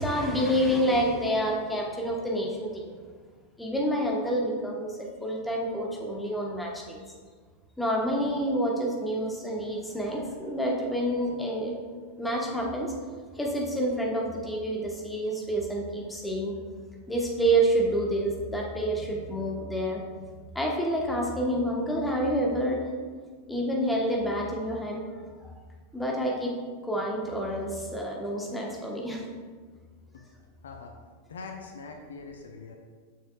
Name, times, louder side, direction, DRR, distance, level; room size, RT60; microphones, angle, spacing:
voice 1, 0.0-2.9 3.6-7.0 7.8-11.7 12.2-12.9 13.3-16.5 17.1-20.0 20.5-22.9 23.5-25.0 25.9-26.5 26.9-29.2, right 1 dB, 5° left, -2 dB, 1.2 m, -28 dB
voice 2, 30.6-31.0 31.3-32.8, left 4 dB, 65° left, 3 dB, 0.6 m, -42 dB
7.3 x 6.4 x 2.4 m, 1.5 s
figure-of-eight pair, 90°, 0 cm